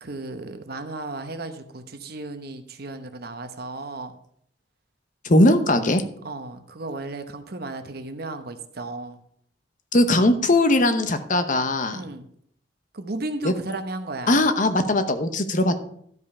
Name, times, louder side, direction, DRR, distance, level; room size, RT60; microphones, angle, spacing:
voice 1, 0.0-4.1 6.2-9.2 11.9-12.3 12.9-14.4, right 2 dB, 55° right, 8 dB, 0.9 m, -34 dB
voice 2, 5.2-6.0 9.9-12.0 13.4-13.5 14.3-15.8, left 1 dB, 45° left, 9 dB, 0.9 m, -19 dB
12.5 x 5.4 x 5.4 m, 0.67 s
head